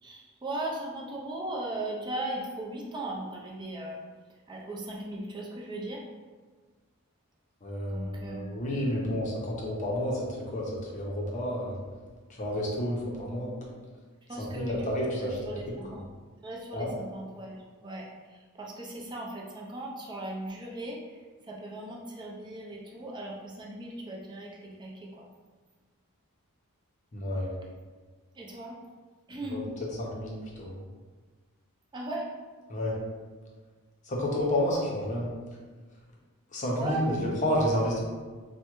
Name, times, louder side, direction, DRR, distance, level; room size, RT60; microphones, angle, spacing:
voice 1, 0.0-4.0 4.5-6.0 7.9-9.1 14.3-16.1 16.4-25.3 28.3-28.7 29.3-29.7 31.9-32.3 34.2-34.4 36.7-37.4, right 1 dB, 20° right, -2 dB, 0.5 m, -38 dB
voice 2, 7.6-11.8 12.3-13.5 14.4-15.4 16.7-16.9 27.1-27.5 29.5-29.6 30.0-30.7 32.7-32.9 34.1-35.3 36.5-38.0, left 1 dB, 35° left, -3 dB, 0.6 m, -30 dB
3.4 x 2.1 x 3.0 m, 1.4 s
head